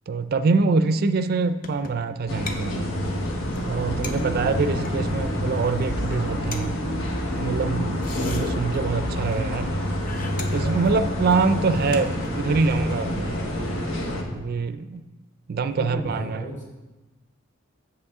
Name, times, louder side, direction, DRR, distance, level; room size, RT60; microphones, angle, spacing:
voice 1, 0.1-2.9 3.7-6.7 7.4-9.7 10.5-13.4 14.3-15.0 15.5-16.4, right 4 dB, 50° right, 11 dB, 0.4 m, -24 dB
sound 1, 1.6-2.2 2.4-2.6 2.9-3.0 3.3-3.4 3.5-3.7 4.0-5.0 5.6-5.8 6.1-6.2 6.5-6.7 7.8-9.1 9.3-9.8 10.1-12.7, left 3 dB, 45° left, 0.7 m, -40 dB
sound 2, 2.3-14.2, equal, 90° left, 1.1 m, -27 dB
voice 2, 15.6-16.6, right 1 dB, 60° left, -4 dB, 2.8 m, -34 dB
8.0 x 7.3 x 3.6 m, 1.1 s
head